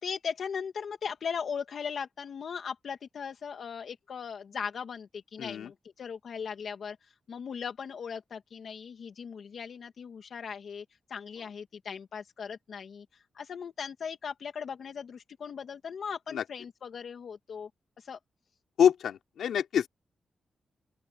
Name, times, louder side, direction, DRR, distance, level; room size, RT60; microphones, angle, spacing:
voice 1, 0.0-17.7 18.0-18.2, left 6 dB, 70° left, 1.8 m, -38 dB
voice 2, 5.4-5.7 16.3-16.4 18.8-19.9, left 8 dB, 90° left, 3.4 m, -26 dB
open air
cardioid pair, 90°, 0 cm